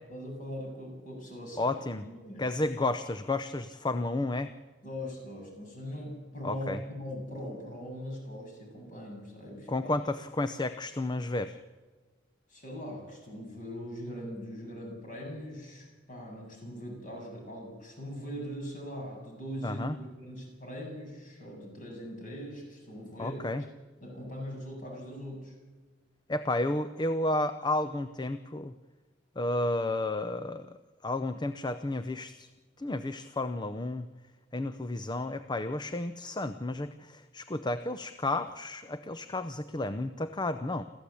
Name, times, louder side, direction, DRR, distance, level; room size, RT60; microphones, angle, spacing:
voice 1, 0.1-2.4 4.8-9.9 12.5-23.5 24.0-25.6, equal, 40° left, 1 dB, 7.8 m, -41 dB
voice 2, 1.6-2.0 2.4-4.5 6.4-6.8 9.7-11.6 19.6-20.0 23.2-23.6 26.3-28.7 29.4-30.8 31.0-32.5 32.8-34.1 34.5-40.8, left 2 dB, 20° left, 10 dB, 0.6 m, -32 dB
27.5 x 14.5 x 8.6 m, 1.3 s
head